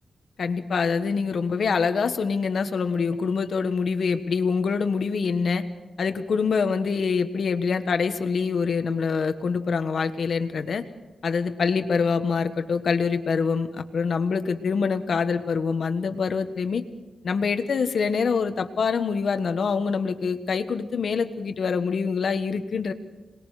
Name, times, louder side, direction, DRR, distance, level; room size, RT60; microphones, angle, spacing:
voice 1, 0.4-5.6 6.0-10.8 11.2-16.8 17.2-22.9, left 5 dB, 65° left, 8 dB, 1.4 m, -25 dB
27.0 x 20.5 x 5.0 m, 1.1 s
wide cardioid pair, 95°, 0 cm